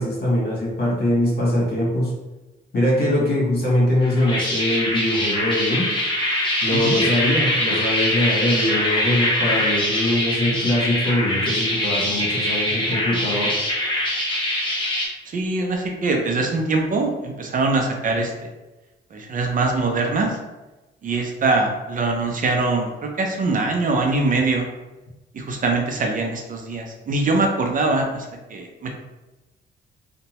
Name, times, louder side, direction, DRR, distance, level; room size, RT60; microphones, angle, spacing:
voice 1, 0.0-2.1 2.7-5.9 6.6-13.6, left 1 dB, 55° left, -5 dB, 1.2 m, -22 dB
sound 1, 4.0-15.1, left 1 dB, 25° left, 0.9 m, -23 dB
voice 2, 15.3-18.5 19.1-20.4 21.0-24.7 25.3-29.0, right 3 dB, 45° right, 2 dB, 0.5 m, -23 dB
2.7 x 2.2 x 2.9 m, 1.1 s
cardioid pair, 90°, 20 cm